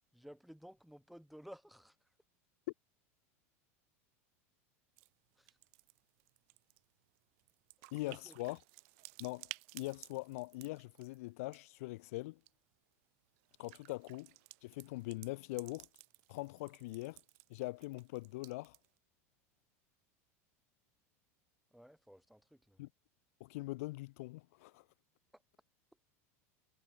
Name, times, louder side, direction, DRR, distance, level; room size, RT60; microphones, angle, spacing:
voice 1, 0.1-2.0 5.4-5.5 8.0-8.3 21.7-22.8 25.3-25.4, equal, ahead, 3.9 m, -55 dB
sound 1, 5.0-5.1 5.3-11.8 12.2-12.5 13.4-19.0, right 32 dB, 65° right, 7.2 m, -55 dB
voice 2, 7.9-8.6 9.2-12.4 13.6-14.3 14.6-15.9 16.3-17.2 17.5-18.7 22.8-22.9 23.4-24.8, left 21 dB, 70° left, 0.8 m, -42 dB
supercardioid pair, 130°, 8 cm